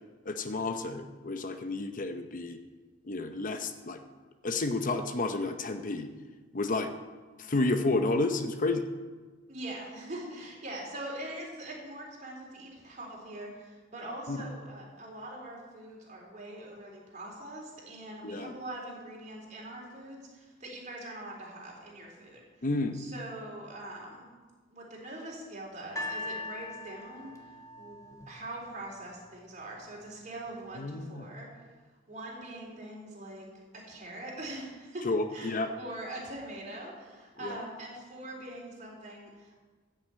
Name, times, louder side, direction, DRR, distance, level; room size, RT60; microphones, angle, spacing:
voice 1, 0.3-2.6 3.1-4.0 4.4-6.1 6.5-6.9 7.4-8.8 14.3-14.4 18.2-18.5 22.6-23.0 30.7-31.3 35.0-35.7 37.4-37.6, left 2 dB, 45° left, 8 dB, 0.8 m, -31 dB
voice 2, 9.5-22.4 22.9-24.3 24.7-31.7 32.1-33.5 33.9-35.1 35.3-39.5, right 1 dB, 40° right, -2 dB, 4.0 m, -43 dB
sound 1, 26.0-29.1 29.9-30.0, left 2 dB, 15° left, 1.7 m, -40 dB
13.5 x 6.7 x 8.6 m, 1.4 s
head